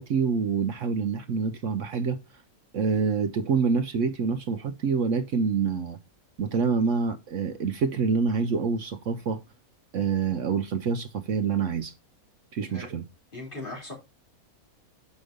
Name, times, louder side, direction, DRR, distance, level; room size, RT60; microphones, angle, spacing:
voice 1, 0.0-2.2 2.7-6.0 6.4-9.4 9.9-11.9 12.5-13.0, right 5 dB, 65° right, 1.0 m, -26 dB
voice 2, 13.3-13.9, left 2 dB, 35° left, 3.3 m, -38 dB
6.5 x 5.3 x 5.0 m
omnidirectional pair, 1.5 m